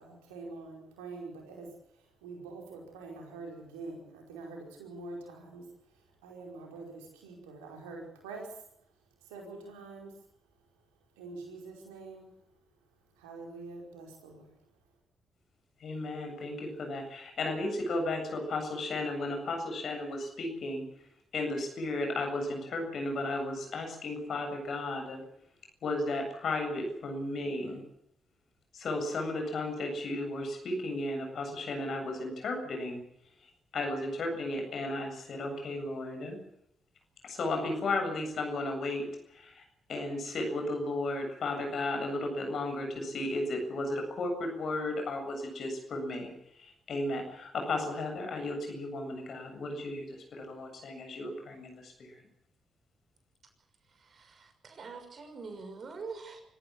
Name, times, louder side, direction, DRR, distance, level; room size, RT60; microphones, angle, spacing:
voice 1, 0.0-8.6 9.2-10.2 11.1-12.3 13.1-14.5, right 3 dB, 85° right, 1 dB, 4.9 m, -45 dB
voice 2, 15.8-20.8 21.3-25.2 25.8-27.8 28.7-33.0 33.4-36.4 37.2-39.6 39.9-52.2, left 2 dB, 60° left, 4 dB, 7.7 m, -34 dB
voice 3, 53.9-56.4, right 4 dB, 50° right, 6 dB, 6.2 m, -44 dB
25.0 x 15.0 x 8.7 m, 0.73 s
hypercardioid pair, 40°, 0 cm